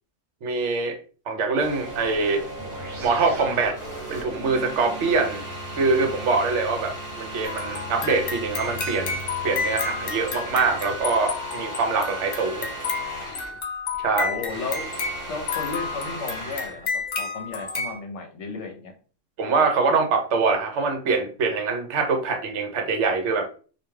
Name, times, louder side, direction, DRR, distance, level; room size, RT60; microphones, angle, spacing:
voice 1, 0.4-1.0 1.3-2.4 3.0-3.8 4.1-5.4 5.8-9.2 9.4-12.7 14.0-14.3 19.4-23.5, right 4 dB, 70° right, 5 dB, 0.9 m, -24 dB
sound 1, 1.6-13.6 13.9-16.8, right 1 dB, 35° left, 1.1 m, -37 dB
sound 2, 2.6-11.4, left 1 dB, 40° right, 0.8 m, -41 dB
sound 3, 7.4-18.0, left 5 dB, 85° left, 0.4 m, -31 dB
voice 2, 14.2-14.9 15.3-18.9, left 4 dB, 70° left, 4 dB, 0.9 m, -34 dB
2.4 x 2.2 x 3.1 m, 0.39 s
omnidirectional pair, 1.3 m